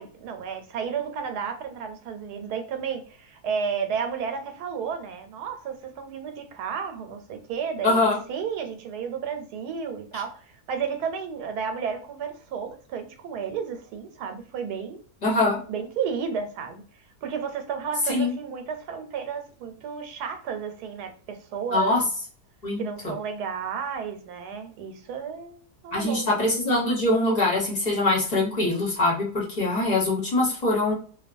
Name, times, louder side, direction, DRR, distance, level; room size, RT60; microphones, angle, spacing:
voice 1, 0.0-15.0 15.7-22.1 22.8-26.3, right 6 dB, 85° right, 1.1 m, -32 dB
voice 2, 7.8-8.2 15.2-15.6 18.1-18.3 21.7-22.0 22.6-22.8 25.9-30.9, left 2 dB, 30° left, 0.9 m, -23 dB
2.8 x 2.2 x 2.5 m
omnidirectional pair, 1.6 m